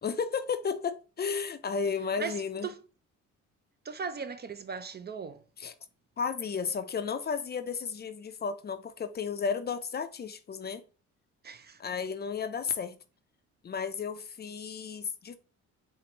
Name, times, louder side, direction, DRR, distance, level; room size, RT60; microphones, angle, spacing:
voice 1, 0.0-2.7 5.6-5.7 6.2-10.8 11.8-13.0 13.6-15.4, left 6 dB, 35° left, 0.4 m, -33 dB
voice 2, 2.2-2.8 3.8-5.4 11.4-11.8, right 5 dB, 35° right, 0.4 m, -38 dB
4.5 x 2.5 x 2.9 m
cardioid pair, 90°, 30 cm